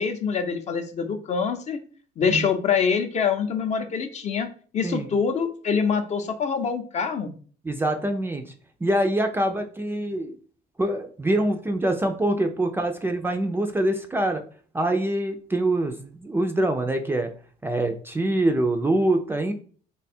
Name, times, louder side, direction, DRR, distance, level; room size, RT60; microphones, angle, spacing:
voice 1, 0.0-1.8 2.2-4.5 4.7-7.3, left 6 dB, 45° left, 7 dB, 0.6 m, -25 dB
voice 2, 7.6-8.4 8.8-10.4 10.8-14.4 14.7-17.3 17.6-19.5, right 1 dB, 15° right, 4 dB, 0.4 m, -24 dB
3.3 x 2.3 x 4.2 m, 0.43 s
cardioid pair, 110°, 17 cm